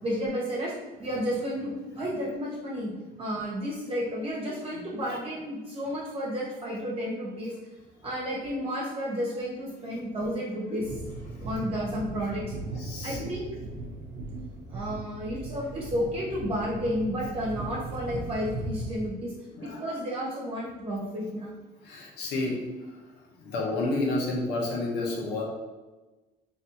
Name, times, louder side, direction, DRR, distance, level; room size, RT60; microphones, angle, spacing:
voice 1, 0.0-0.7 1.0-2.9 3.2-7.5 8.0-10.9 11.4-12.4 13.0-13.5 14.7-19.3 19.6-21.5, equal, 35° right, -5 dB, 1.1 m, -32 dB
sound 1, 10.8-19.1, right 2 dB, 70° right, 0.7 m, -38 dB
voice 2, 12.8-13.2 19.5-19.8 21.8-22.6 23.4-25.4, left 2 dB, 85° left, -1 dB, 1.1 m, -30 dB
3.1 x 2.6 x 4.3 m, 1.2 s
cardioid pair, 110°, 17 cm